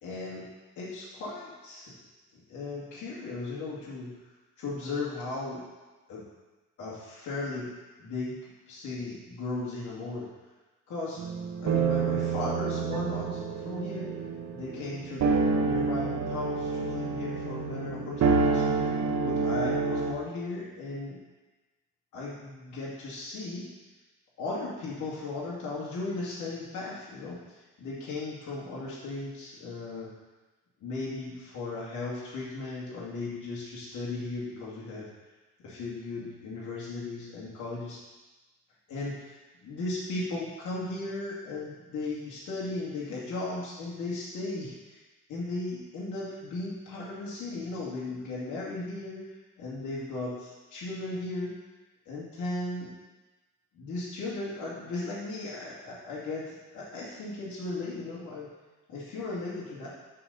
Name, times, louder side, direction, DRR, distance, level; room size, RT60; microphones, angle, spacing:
voice 1, 0.0-0.5 0.8-1.9 2.5-4.1 4.6-5.6 6.1-6.2 6.8-7.7 8.0-10.3 10.9-11.2 11.6-14.1 14.5-15.3 15.5-18.6 19.2-21.2 22.1-23.7 24.4-30.1 30.8-35.1 35.6-38.0 38.9-45.0 45.3-49.3 49.6-51.5 52.1-52.9 53.7-58.5 58.9-59.9, left 2 dB, 75° left, -6 dB, 2.4 m, -36 dB
sound 1, 11.2-20.1, right 4 dB, 65° right, 1.4 m, -28 dB
11.0 x 4.2 x 6.9 m, 1.2 s
cardioid pair, 90°, 30 cm